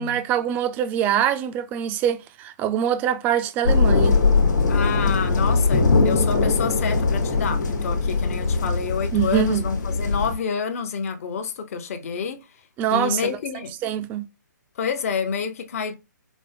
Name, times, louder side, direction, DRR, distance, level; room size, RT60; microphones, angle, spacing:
voice 1, 0.0-4.2 9.1-9.6 12.8-13.3 13.8-14.2, right 10 dB, 15° right, 0.3 m, -24 dB
sound 1, 3.6-10.3, left 4 dB, 65° left, 1.2 m, -21 dB
voice 2, 4.7-12.6 12.9-13.8 14.7-15.9, left 6 dB, 45° left, 0.8 m, -28 dB
5.1 x 2.1 x 3.4 m
figure-of-eight pair, 140°, 11 cm